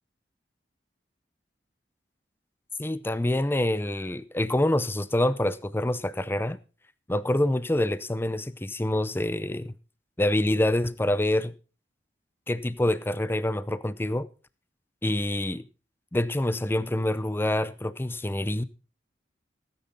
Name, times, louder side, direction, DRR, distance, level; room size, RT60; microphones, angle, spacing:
voice 1, 2.8-6.6 7.1-9.8 10.2-11.5 12.5-14.3 15.0-15.6 16.1-18.6, left 1 dB, 15° left, 0.6 m, -26 dB
17.0 x 9.5 x 4.1 m
head